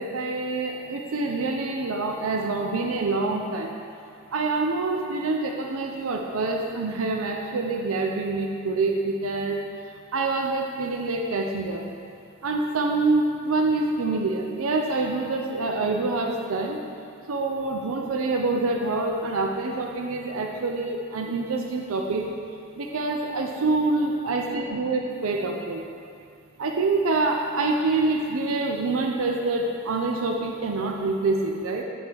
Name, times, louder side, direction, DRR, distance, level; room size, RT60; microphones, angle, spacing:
voice 1, 0.0-3.7 4.3-9.6 10.1-11.8 12.4-16.8 17.3-22.3 22.8-25.8 26.6-31.8, right 3 dB, 75° right, 2 dB, 0.6 m, -26 dB
8.6 x 4.5 x 4.6 m, 2.4 s
head